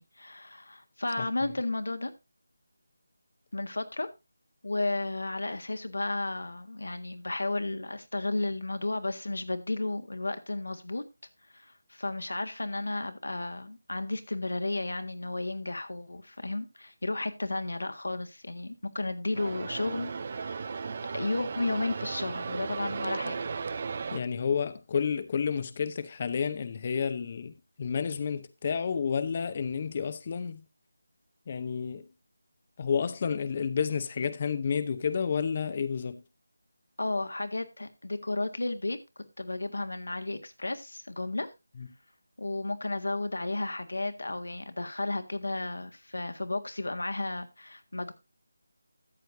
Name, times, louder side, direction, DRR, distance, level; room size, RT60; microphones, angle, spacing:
voice 1, 0.0-2.1 3.5-4.1 4.6-11.0 11.5-20.7 21.1-23.5 37.0-39.0 39.4-41.5 42.4-48.1, left 2 dB, 80° left, 1.7 m, -33 dB
sound 1, 19.3-24.2, right 5 dB, 40° right, 0.6 m, -36 dB
voice 2, 24.1-30.6 31.5-32.1 32.8-36.2 41.8-41.9, left 6 dB, 35° left, 0.7 m, -30 dB
13.5 x 7.9 x 2.6 m
figure-of-eight pair, 165°, 0 cm